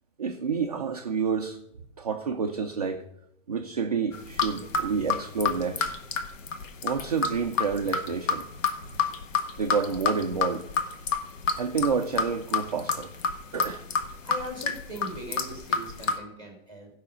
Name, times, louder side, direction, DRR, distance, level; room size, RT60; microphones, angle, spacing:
voice 1, 0.2-1.6 2.0-3.0 3.5-6.0 6.8-8.5 8.9-9.0 9.6-10.7 11.5-13.1 13.5-13.8, right 5 dB, 30° right, 0.4 m, -29 dB
sound 1, 4.1-16.2, left 5 dB, 75° left, 1.3 m, -29 dB
voice 2, 14.2-16.9, equal, 10° left, 2.1 m, -39 dB
14.5 x 5.7 x 5.0 m
hypercardioid pair, 170°, 39 cm